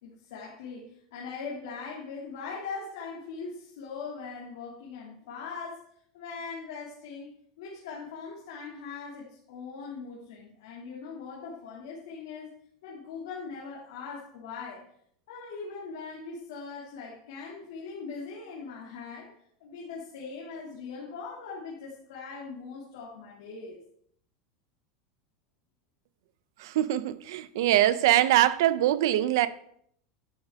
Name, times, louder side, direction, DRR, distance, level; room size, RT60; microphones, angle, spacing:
voice 1, 0.0-5.8 6.1-12.5 12.8-14.8 15.3-19.3 19.6-23.8, left 5 dB, 80° left, 2.7 m, -40 dB
voice 2, 26.6-29.5, right 13 dB, 75° right, 0.7 m, -23 dB
11.5 x 7.4 x 3.7 m
supercardioid pair, 155°, 2 cm